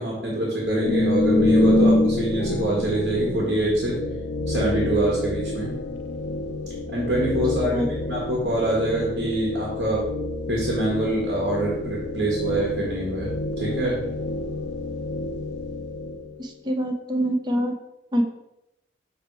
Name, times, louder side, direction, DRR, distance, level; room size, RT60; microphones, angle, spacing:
voice 1, 0.0-3.9 4.5-5.7 6.9-10.0 10.5-13.3 13.6-14.0, right 1 dB, 65° right, -4 dB, 1.7 m, -25 dB
sound 1, 0.6-16.4, left 2 dB, 80° left, 0.5 m, -27 dB
voice 2, 16.4-17.7 18.1-18.2, equal, 25° right, 3 dB, 0.8 m, -25 dB
6.3 x 3.5 x 4.7 m, 0.88 s
head